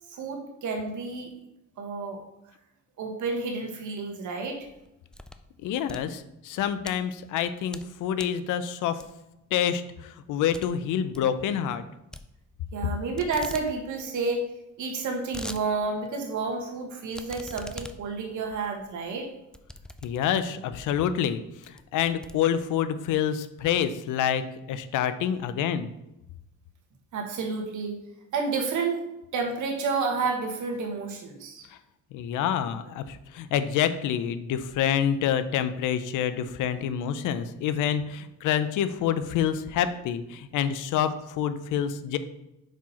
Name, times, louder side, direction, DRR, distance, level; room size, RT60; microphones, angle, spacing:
voice 1, 0.1-1.3 1.8-2.2 3.0-4.6 12.7-14.4 14.8-19.3 27.1-28.0 28.3-29.0 29.3-31.7, right 4 dB, 75° right, 3 dB, 1.4 m, -30 dB
sound 1, 4.5-5.5 5.8-6.9 7.4-7.9 8.2-8.4 9.0-9.4 9.7-9.8 10.1-10.2 10.5-10.7 11.0-11.3 12.1-12.9 13.2-13.7 14.0-14.1 14.3-14.4 14.9-15.6 16.1-16.2 17.1-20.6 21.2-21.3 21.6-22.9, left 1 dB, 5° left, 0.3 m, -43 dB
voice 2, 5.6-9.0 9.5-11.8 20.0-21.4 21.7-24.4 24.7-25.9 32.1-42.2, left 9 dB, 85° left, 12 dB, 0.6 m, -27 dB
5.6 x 5.0 x 4.2 m, 0.90 s
cardioid pair, 90°, 30 cm